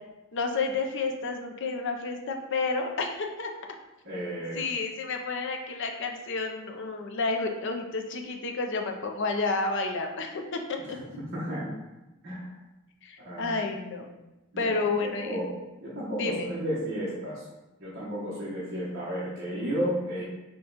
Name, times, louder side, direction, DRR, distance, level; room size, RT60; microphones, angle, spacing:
voice 1, 0.3-3.5 4.5-11.0 13.0-14.1 14.6-15.4 16.2-16.5, left 3 dB, 55° left, 3 dB, 0.5 m, -30 dB
voice 2, 4.0-4.6 11.3-11.8 12.2-12.5 13.2-13.5 14.5-14.7 15.0-15.5 15.8-17.4 17.8-20.2, equal, 50° right, -8 dB, 1.0 m, -32 dB
5.1 x 2.3 x 3.8 m, 1.0 s
head